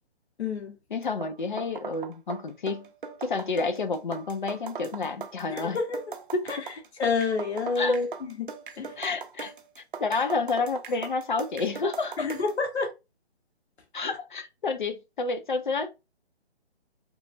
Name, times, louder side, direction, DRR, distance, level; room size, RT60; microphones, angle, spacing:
voice 1, 0.4-0.8 5.5-6.0 6.5-9.0 12.2-12.9, left 4 dB, 75° left, 1.0 m, -29 dB
voice 2, 0.9-2.9 3.2-5.8 6.3-6.7 7.8-8.0 9.0-12.3 13.9-15.9, left 4 dB, 50° left, 0.4 m, -30 dB
sound 1, 1.0-12.6, right 6 dB, 50° right, 0.5 m, -40 dB
3.1 x 2.2 x 2.4 m
hypercardioid pair, 170°, 33 cm